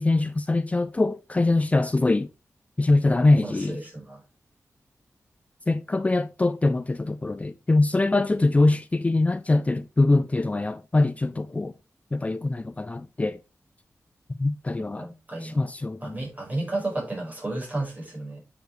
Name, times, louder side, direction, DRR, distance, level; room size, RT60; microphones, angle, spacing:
voice 1, 0.0-2.3 2.8-3.8 5.7-11.7 12.1-13.4 14.4-15.1 15.4-16.2, left 2 dB, 25° left, 0.5 m, -23 dB
voice 2, 3.4-4.2 15.0-15.6 16.0-18.4, right 2 dB, 30° right, 5.3 m, -32 dB
9.1 x 7.1 x 3.3 m
wide cardioid pair, 95°, 6 cm